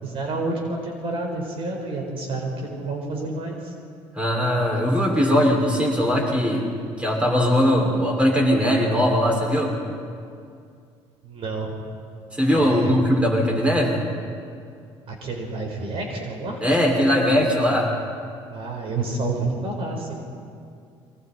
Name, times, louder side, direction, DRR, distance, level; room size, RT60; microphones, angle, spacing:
voice 1, 0.0-3.7 11.2-11.8 12.5-13.0 15.1-16.6 18.5-20.2, right 2 dB, 60° right, 1 dB, 4.7 m, -29 dB
voice 2, 4.1-6.7 7.0-9.8 12.3-14.0 16.6-17.9, equal, 10° right, -1 dB, 5.8 m, -20 dB
30.0 x 24.0 x 4.4 m, 2.3 s
cardioid pair, 105°, 11 cm